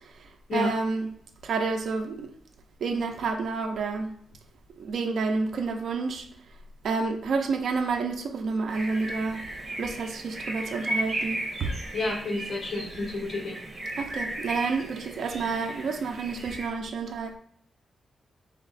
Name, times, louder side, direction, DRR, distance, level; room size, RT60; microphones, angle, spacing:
voice 1, 0.5-1.1 1.4-2.3 2.8-4.1 4.8-6.3 6.8-9.4 9.8-11.7 14.0-17.4, right 4 dB, 75° right, 0.6 m, -29 dB
sound 1, 8.7-16.7, right 1 dB, 45° right, 1.5 m, -35 dB
voice 2, 11.9-13.5, left 2 dB, 55° left, 1.4 m, -30 dB
3.6 x 3.1 x 4.0 m
cardioid pair, 105°, 0 cm